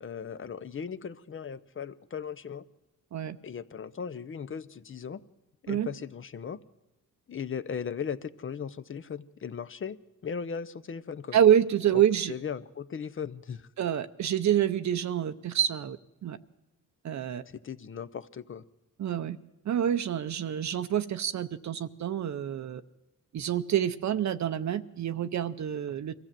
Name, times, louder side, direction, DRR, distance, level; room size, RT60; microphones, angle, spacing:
voice 1, 0.0-2.6 3.4-5.2 5.6-6.6 7.3-11.4 11.9-12.0 12.3-13.7 17.5-18.6, left 7 dB, 40° left, 14 dB, 0.7 m, -37 dB
voice 2, 11.3-12.3 13.8-16.0 16.2-16.4 17.0-17.4 19.0-19.4 19.7-22.8 23.3-26.1, right 10 dB, 60° right, 10 dB, 0.7 m, -27 dB
23.5 x 15.0 x 7.5 m, 1.0 s
cardioid pair, 105°, 32 cm